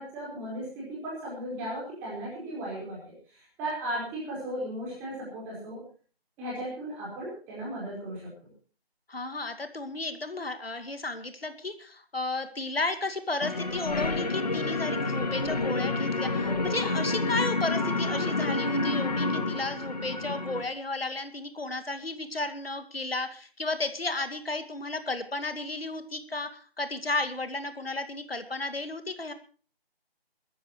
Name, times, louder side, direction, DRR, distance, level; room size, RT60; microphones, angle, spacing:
voice 1, 0.0-5.8 6.4-8.2 16.4-16.7, right 1 dB, 5° right, -5 dB, 4.6 m, -36 dB
voice 2, 9.1-29.3, left 2 dB, 70° left, 9 dB, 2.4 m, -33 dB
sound 1, 13.4-20.6, left 2 dB, 40° left, 2.3 m, -29 dB
21.5 x 14.5 x 3.1 m, 0.40 s
figure-of-eight pair, 170°, 31 cm